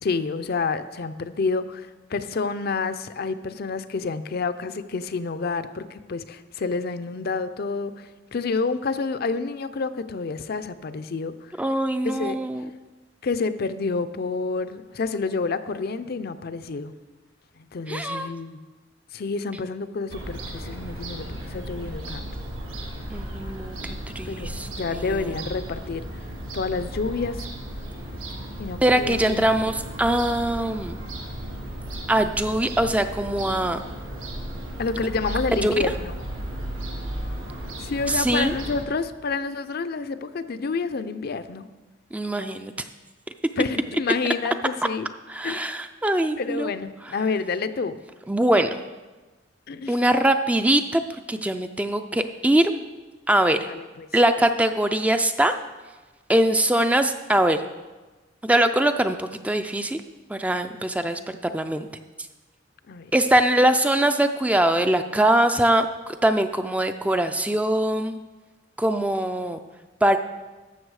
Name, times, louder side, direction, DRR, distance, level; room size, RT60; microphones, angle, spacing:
voice 1, 0.0-11.3 12.2-12.4 13.2-16.9 17.7-18.6 19.1-22.3 24.3-26.1 26.5-27.5 28.6-29.5 34.8-36.1 37.8-41.7 43.6-45.1 45.4-45.7 46.4-48.0 49.7-50.0 53.7-54.1 62.9-63.1, left 4 dB, 50° left, 11 dB, 0.5 m, -29 dB
voice 2, 11.6-12.7 17.9-18.3 23.1-25.4 28.8-31.0 32.1-33.8 35.6-35.7 38.1-38.5 42.1-42.9 45.3-46.7 47.0-47.1 48.3-48.8 49.9-52.7 53.3-53.7 54.1-55.5 56.3-57.6 58.4-60.0 60.3-61.9 63.1-68.2 68.8-69.6 70.0-70.2, right 1 dB, 5° right, 8 dB, 0.3 m, -22 dB
Fowl / Gull seagull, 20.1-38.8, right 1 dB, 90° right, 1.8 m, -35 dB
12.5 x 7.1 x 4.8 m, 1.2 s
head